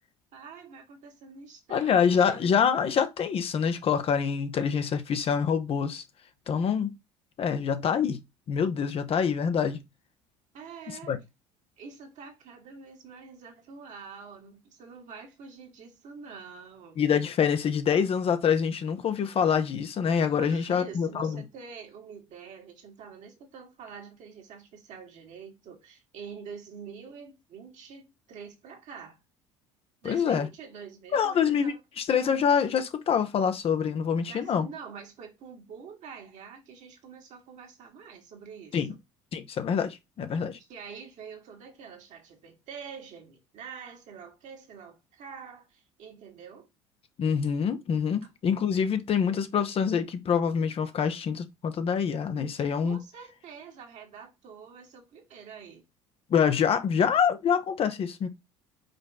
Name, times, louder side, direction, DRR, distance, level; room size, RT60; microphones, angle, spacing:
voice 1, 0.3-2.5 10.5-11.2 11.8-17.0 20.3-29.2 30.0-31.8 34.3-38.9 40.6-46.7 52.8-55.8, right 6 dB, 50° right, 1.8 m, -46 dB
voice 2, 1.7-6.0 6.5-6.9 7.4-8.2 8.5-9.8 11.1-11.2 17.0-21.4 30.0-30.5 31.1-34.7 38.7-38.9 39.3-40.6 47.2-53.0 56.3-58.3, left 7 dB, 40° left, 0.8 m, -26 dB
5.1 x 4.4 x 2.2 m
figure-of-eight pair, 65°, 15 cm